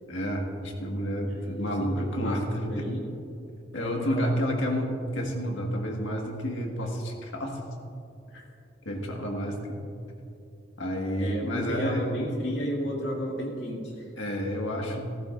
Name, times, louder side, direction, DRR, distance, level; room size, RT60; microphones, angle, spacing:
voice 1, 0.1-2.4 2.8-2.9 3.7-7.6 8.9-9.8 10.8-12.1 14.2-15.0, equal, 75° left, 1 dB, 1.7 m, -30 dB
voice 2, 1.2-3.1 3.7-4.3 8.3-8.4 8.9-9.1 11.2-14.1, equal, 60° left, -3 dB, 2.3 m, -34 dB
15.5 x 14.0 x 2.5 m, 2.7 s
head